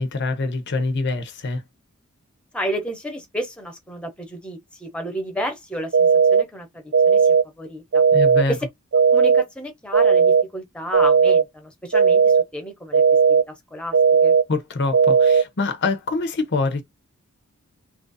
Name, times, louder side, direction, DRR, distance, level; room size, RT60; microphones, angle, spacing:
voice 1, 0.0-1.6 8.1-8.5 14.5-16.8, left 3 dB, 55° left, 0.8 m, -24 dB
voice 2, 2.5-8.0 8.5-8.6 9.1-13.0 13.3-14.0 14.2-14.3, equal, 5° left, 0.9 m, -32 dB
sound 1, 5.9-6.4 6.9-7.4 7.9-8.4 8.9-9.4 9.9-10.4 10.9-11.4 11.9-12.4 12.9-13.4 13.9-14.4 14.9-15.4, right 6 dB, 60° right, 0.4 m, -15 dB
3.0 x 2.5 x 4.0 m
head